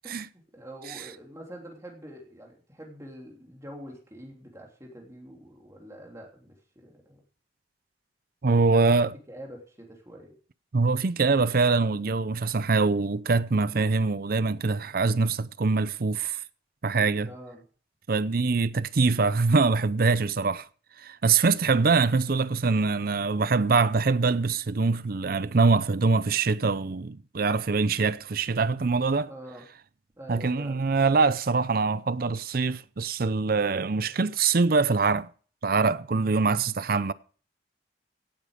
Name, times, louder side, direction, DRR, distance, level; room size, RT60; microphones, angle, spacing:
voice 1, 0.1-7.2 8.7-9.0 9.3-10.4 17.2-17.6 29.2-29.7 30.2-30.9, equal, 15° right, 3.2 m, -45 dB
voice 2, 8.4-9.1 10.7-16.4 16.8-17.3 18.1-20.7 21.0-29.3 30.3-35.3 35.6-37.1, right 4 dB, 55° right, 0.6 m, -24 dB
17.0 x 9.2 x 5.1 m
head